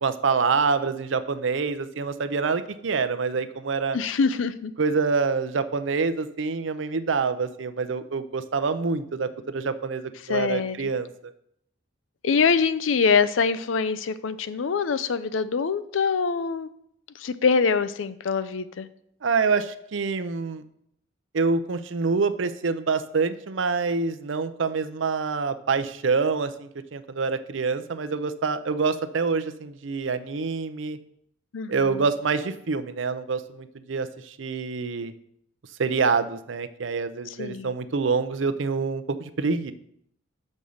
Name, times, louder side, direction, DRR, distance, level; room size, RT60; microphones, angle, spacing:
voice 1, 0.0-4.0 4.8-11.3 19.2-20.6 21.3-31.0 31.7-35.1 35.8-39.7, right 4 dB, 70° right, 11 dB, 0.6 m, -26 dB
voice 2, 3.9-4.7 10.2-10.9 12.2-16.7 17.1-18.9 31.5-32.1 37.3-37.8, left 5 dB, 80° left, 14 dB, 0.5 m, -24 dB
6.3 x 5.3 x 7.1 m, 0.72 s
head